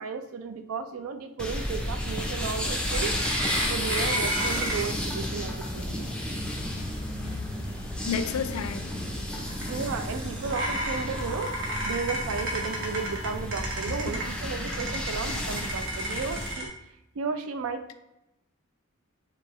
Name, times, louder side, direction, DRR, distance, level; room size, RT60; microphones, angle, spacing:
voice 1, 0.0-3.1 3.7-6.2 9.7-11.5 11.8-16.7 17.2-17.8, right 5 dB, 85° right, 0.4 m, -34 dB
sound 1, 1.4-16.5, left 1 dB, 5° left, 0.5 m, -32 dB
sound 2, 2.9-16.7, right 1 dB, 65° right, 0.9 m, -35 dB
voice 2, 8.0-9.5 13.9-14.1, left 6 dB, 90° left, 0.4 m, -33 dB
4.6 x 2.5 x 3.0 m
head